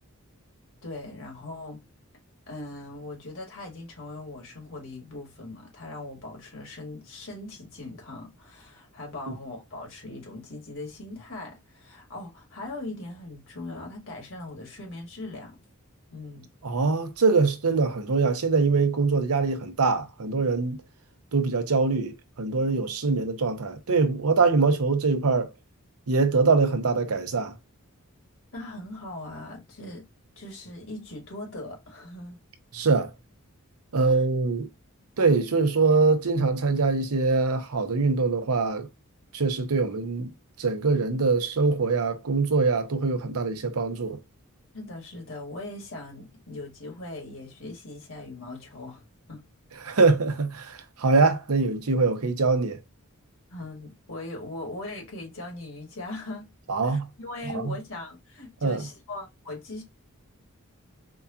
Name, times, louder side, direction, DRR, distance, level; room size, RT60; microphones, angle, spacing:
voice 1, 0.8-1.8 2.5-15.6 16.1-16.5 28.5-30.1 30.4-32.4 34.0-34.2 44.7-49.0 49.3-49.4 53.5-56.5 56.8-59.8, left 2 dB, 65° left, 1.9 m, -40 dB
voice 2, 16.6-20.8 21.3-25.5 26.1-27.5 32.7-33.1 33.9-34.7 35.2-38.9 39.3-40.3 40.6-44.2 49.8-52.8 56.7-57.1 57.5-57.8 58.6-58.8, right 4 dB, 80° right, 0.7 m, -23 dB
4.6 x 2.3 x 2.7 m
head